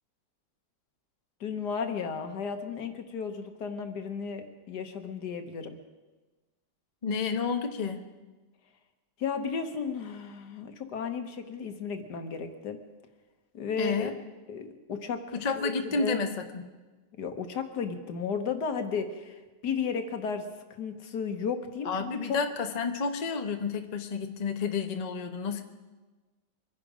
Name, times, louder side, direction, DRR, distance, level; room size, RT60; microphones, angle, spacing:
voice 1, 1.4-5.8 9.2-12.8 13.5-14.1 14.5-16.2 17.2-20.4 20.8-22.4, left 6 dB, 70° left, 7 dB, 1.7 m, -34 dB
voice 2, 7.0-8.0 13.8-14.1 15.3-16.7 21.8-25.6, left 5 dB, 35° left, 6 dB, 0.7 m, -30 dB
24.0 x 10.5 x 5.0 m, 1.2 s
omnidirectional pair, 1.9 m